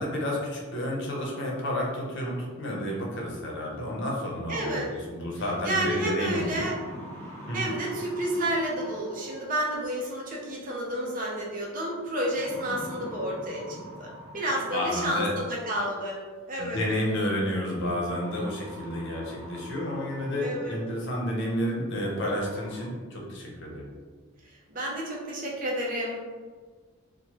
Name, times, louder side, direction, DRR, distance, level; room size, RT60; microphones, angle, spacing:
voice 1, 0.0-6.7 7.5-7.7 14.7-15.3 16.6-23.9, left 1 dB, 60° left, -2 dB, 0.7 m, -31 dB
voice 2, 4.5-4.9 5.6-6.8 7.5-16.2 16.5-16.8 20.4-20.8 24.4-26.2, right 1 dB, 40° right, -3 dB, 0.6 m, -30 dB
sound 1, 6.5-9.7 11.1-11.5 12.3-15.1 16.4-16.5 18.0-20.8 21.3-21.4 22.0-22.1 22.3-22.9, equal, 10° left, 0.6 m, -44 dB
3.0 x 2.1 x 2.9 m, 1.5 s
head